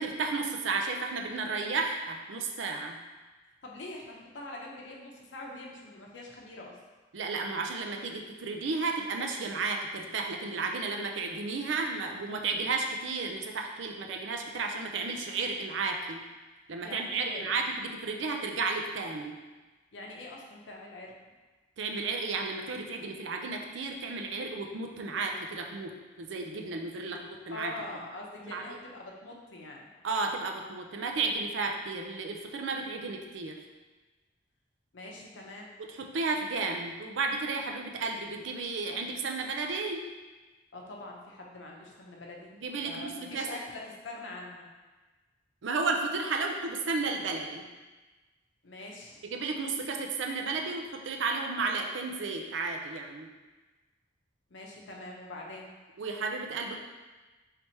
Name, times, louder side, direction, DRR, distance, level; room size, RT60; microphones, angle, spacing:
voice 1, 0.0-2.9 7.1-16.2 16.7-19.4 21.8-25.9 26.2-27.7 28.4-28.8 30.0-33.6 35.9-40.0 42.6-43.5 45.6-47.7 49.2-53.3 56.0-56.8, right 4 dB, 75° right, 3 dB, 0.5 m, -33 dB
voice 2, 3.6-6.8 16.8-17.5 19.9-21.1 27.0-29.9 34.9-35.7 40.7-44.7 48.6-49.2 54.5-55.7, left 2 dB, 75° left, -1 dB, 0.7 m, -44 dB
3.3 x 2.8 x 4.3 m, 1.2 s
head